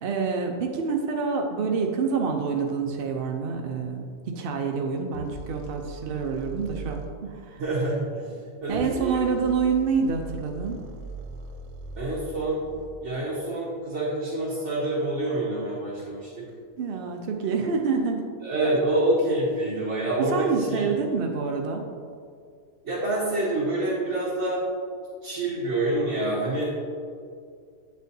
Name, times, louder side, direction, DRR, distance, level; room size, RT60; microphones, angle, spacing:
voice 1, 0.0-7.6 8.7-10.8 16.8-18.3 20.2-21.8, right 5 dB, 65° right, 2 dB, 0.5 m, -27 dB
sound 1, 5.1-7.1 8.6-13.0, right 3 dB, 85° right, 1.2 m, -40 dB
voice 2, 7.6-8.4 8.6-9.3 12.0-12.6 13.0-16.4 18.4-20.9 22.8-24.6 25.2-26.7, right 1 dB, 50° right, -8 dB, 1.6 m, -27 dB
9.1 x 6.3 x 2.7 m, 2.2 s
omnidirectional pair, 1.6 m